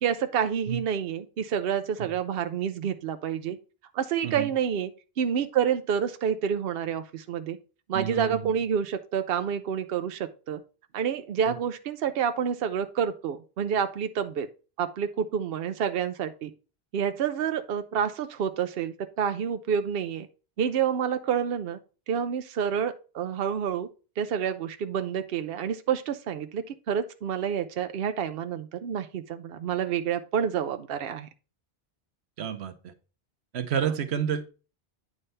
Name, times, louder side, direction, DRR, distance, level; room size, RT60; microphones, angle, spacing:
voice 1, 0.0-3.6 3.9-4.9 5.2-7.6 7.9-10.6 10.9-14.5 14.8-16.5 16.9-20.3 20.6-21.8 22.1-23.9 24.2-31.3 33.8-33.9, right 8 dB, 70° right, 9 dB, 0.8 m, -28 dB
voice 2, 7.9-8.6 32.4-32.7 33.5-34.5, right 8 dB, 90° right, 10 dB, 1.1 m, -29 dB
9.6 x 3.3 x 5.5 m, 0.35 s
omnidirectional pair, 1.1 m